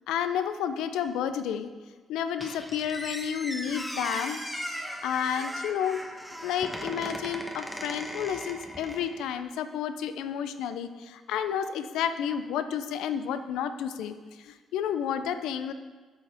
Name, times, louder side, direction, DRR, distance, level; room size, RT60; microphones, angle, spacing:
voice 1, 0.1-1.7 2.1-4.4 5.0-6.0 6.4-14.1 14.4-15.7, left 8 dB, 90° left, 10 dB, 0.5 m, -31 dB
Squeak, 2.4-9.3, equal, 10° left, 1.1 m, -38 dB
10.0 x 6.6 x 3.5 m, 1.4 s
cardioid pair, 90°, 0 cm